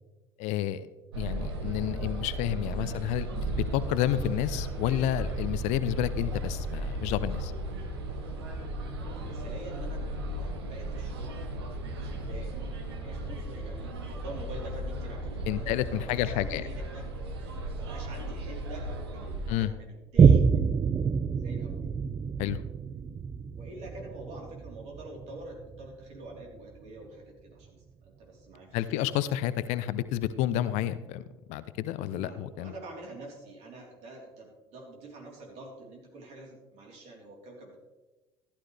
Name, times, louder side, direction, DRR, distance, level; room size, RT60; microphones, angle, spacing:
voice 1, 0.4-0.9 1.2-7.5 15.5-16.6 19.5-19.7 22.4-22.6 28.7-31.2 31.5-32.7, left 12 dB, 60° left, 15 dB, 0.6 m, -30 dB
sound 1, 1.1-19.6, right 1 dB, 80° right, 1.4 m, -35 dB
voice 2, 9.0-11.3 12.1-12.7 13.0-17.1 17.8-20.5 21.3-21.8 23.5-29.0 32.1-37.8, right 2 dB, 55° right, -1 dB, 3.8 m, -46 dB
Boom, 20.2-27.1 27.6-27.7, right 6 dB, 30° right, 0.6 m, -26 dB
14.5 x 11.5 x 3.4 m, 1.1 s
figure-of-eight pair, 60°, 13 cm